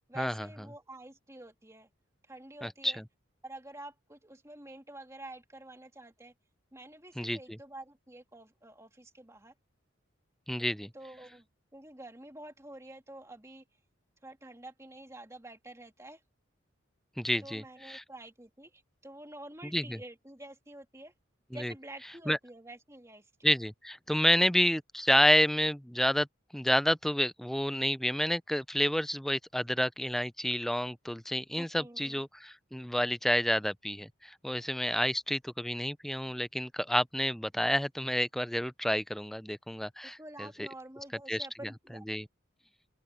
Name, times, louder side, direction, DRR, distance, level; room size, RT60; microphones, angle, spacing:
voice 1, 0.1-1.9 2.3-3.0 3.4-6.3 6.7-9.5 10.9-11.5 11.7-13.6 14.2-16.2 17.4-21.1 21.5-23.5 31.6-32.2 40.0-42.0, right 1 dB, 15° right, 2.6 m, -48 dB
voice 2, 2.6-3.0 7.2-7.6 10.5-10.9 17.2-18.0 19.7-20.0 21.6-21.7 22.3-22.4 23.4-26.3 26.5-40.7 41.3-41.5 42.1-42.2, equal, ahead, 0.3 m, -29 dB
open air
head